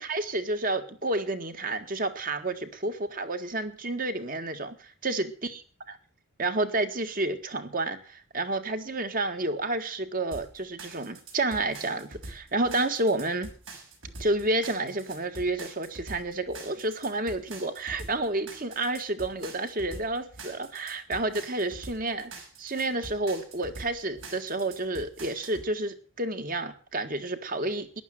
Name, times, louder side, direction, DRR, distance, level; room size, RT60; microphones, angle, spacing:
voice 1, 0.0-4.8 5.0-6.0 6.4-13.5 14.2-22.3 22.6-28.0, right 2 dB, 40° right, 8 dB, 1.8 m, -30 dB
sound 1, 10.3-25.7, right 2 dB, 70° right, 6.3 m, -44 dB
14.5 x 11.0 x 7.6 m, 0.42 s
head